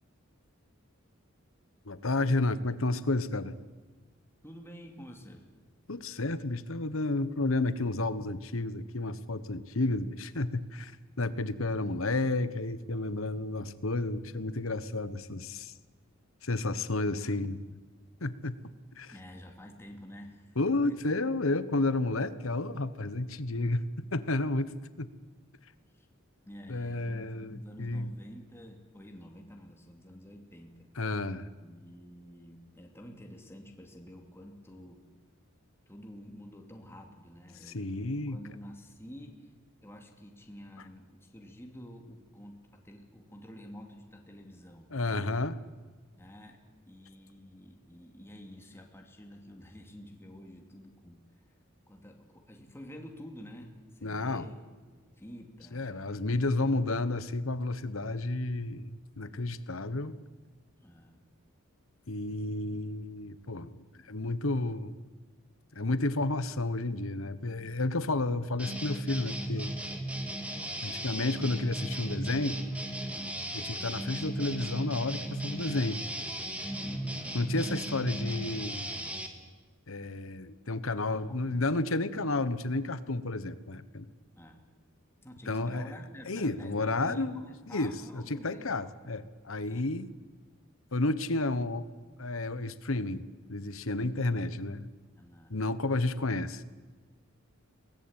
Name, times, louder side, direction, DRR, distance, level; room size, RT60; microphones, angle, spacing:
voice 1, 1.8-3.5 5.9-10.9 11.2-15.7 16.4-17.6 18.2-18.5 19.0-19.1 20.6-23.9 24.1-25.1 26.7-28.1 31.0-31.5 37.7-38.4 44.9-45.6 54.0-54.5 55.7-60.2 62.1-65.0 65.7-69.7 70.8-72.6 73.5-76.0 77.3-78.9 79.9-84.1 85.5-85.9 86.3-90.1 90.9-91.8 92.2-94.9 95.5-96.6, left 2 dB, 75° left, 14 dB, 1.2 m, -31 dB
voice 2, 4.4-5.5 19.1-20.6 20.8-21.0 25.9-26.1 26.5-30.9 31.6-35.1 35.9-39.5 39.8-44.9 46.1-51.2 51.9-54.5 54.9-56.9 60.8-61.2 76.7-77.4 81.1-81.7 84.4-84.6 85.2-88.9 89.7-89.9 94.0-94.4 95.2-95.7, equal, 10° left, 2 dB, 2.6 m, -49 dB
sound 1, 68.6-79.3, right 1 dB, 5° right, 2.2 m, -36 dB
23.0 x 18.5 x 8.9 m, 1.4 s
head